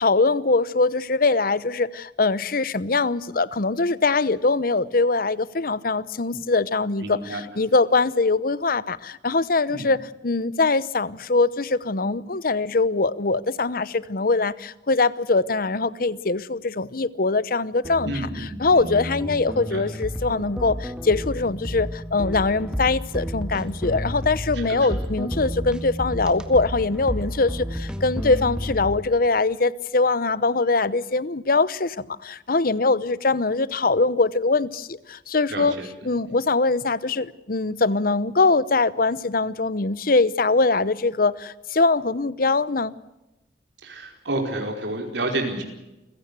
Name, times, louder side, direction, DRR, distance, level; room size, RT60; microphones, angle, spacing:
voice 1, 0.0-35.7 36.0-42.9, left 3 dB, 55° left, 0.9 m, -22 dB
voice 2, 7.0-7.4 9.7-9.9 18.0-18.9 19.7-19.8 24.5-24.9 35.5-36.1 43.8-45.6, right 2 dB, 85° right, 4.8 m, -30 dB
sound 1, 17.8-29.0, equal, 5° right, 1.9 m, -31 dB
28.5 x 16.0 x 8.2 m
head